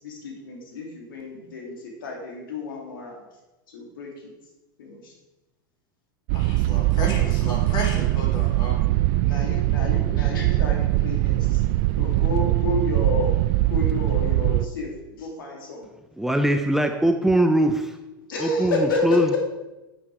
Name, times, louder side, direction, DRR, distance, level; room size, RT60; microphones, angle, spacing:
voice 1, 0.0-3.2 3.7-4.3 4.8-5.1 9.2-11.6 12.0-13.3 13.7-15.9 18.3-19.4, left 3 dB, 75° left, 0 dB, 3.0 m, -30 dB
voice 2, 6.3-8.8, equal, 40° left, 1 dB, 4.1 m, -32 dB
sound 1, 6.3-14.7, right 17 dB, 55° right, 0.4 m, -22 dB
voice 3, 16.2-18.0 18.4-19.4, right 1 dB, 5° right, 5 dB, 0.7 m, -21 dB
9.6 x 8.5 x 4.9 m, 1.0 s
hypercardioid pair, 100°, 12 cm